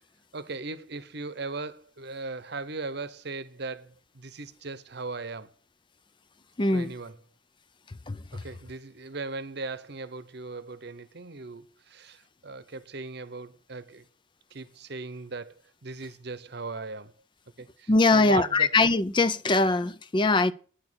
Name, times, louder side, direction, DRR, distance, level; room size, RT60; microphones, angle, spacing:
voice 1, 0.3-5.5 6.7-7.2 8.3-14.1 14.5-17.1 17.6-18.7, right 3 dB, 55° right, 0.9 m, -38 dB
voice 2, 6.6-6.9 8.1-8.2 17.9-20.5, left 3 dB, 25° left, 0.4 m, -22 dB
9.6 x 6.4 x 8.6 m
head